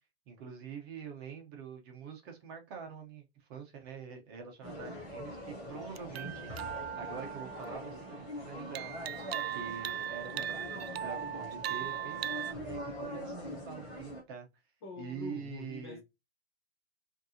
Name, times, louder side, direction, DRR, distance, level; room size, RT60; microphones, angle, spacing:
voice 1, 0.3-6.5 7.0-8.9 9.5-14.5 15.0-16.0, right 6 dB, 25° right, 0.8 m, -45 dB
sound 1, 4.6-14.2, equal, 10° left, 0.3 m, -43 dB
sound 2, 6.0-8.2 8.7-12.5, right 11 dB, 75° right, 0.5 m, -39 dB
voice 2, 14.8-16.0, left 3 dB, 25° left, 0.7 m, -44 dB
5.1 x 2.7 x 2.7 m
hypercardioid pair, 160°, 31 cm